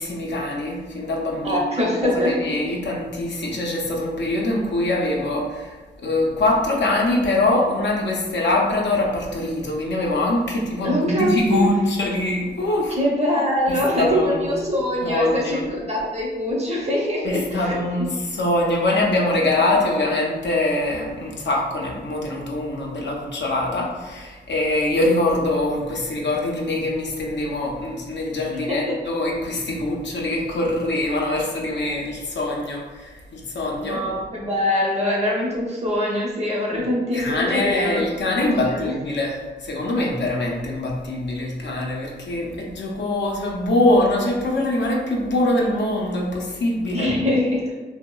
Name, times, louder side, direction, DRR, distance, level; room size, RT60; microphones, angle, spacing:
voice 1, 0.0-5.8 6.0-13.0 13.7-14.5 15.0-15.6 17.2-34.0 36.7-36.8 37.1-47.1, left 1 dB, 70° left, -1 dB, 0.5 m, -23 dB
voice 2, 1.4-2.7 10.8-11.7 12.9-18.1 28.5-29.0 33.8-38.0 38.6-38.9 46.9-47.7, left 1 dB, 35° right, -3 dB, 0.7 m, -23 dB
2.8 x 2.0 x 2.2 m, 1.2 s
cardioid pair, 70°, 19 cm